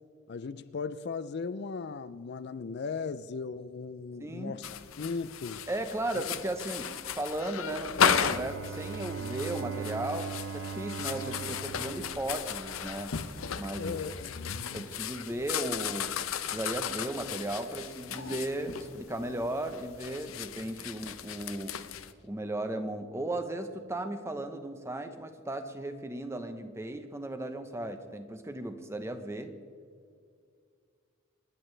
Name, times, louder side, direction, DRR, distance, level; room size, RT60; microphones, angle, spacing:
voice 1, 0.3-4.7 5.0-5.6 6.1-6.2 13.8-14.4 15.3-15.4, left 4 dB, 55° left, 0.4 m, -37 dB
voice 2, 4.2-4.6 5.7-13.1 13.5-14.0 14.7-16.2 16.4-21.8 22.2-29.5, right 1 dB, 15° right, 0.8 m, -36 dB
sound 1, 4.6-22.1, left 7 dB, 90° left, 0.7 m, -35 dB
Bowed string instrument, 7.9-12.9, right 6 dB, 80° right, 0.6 m, -40 dB
27.0 x 10.0 x 3.3 m
head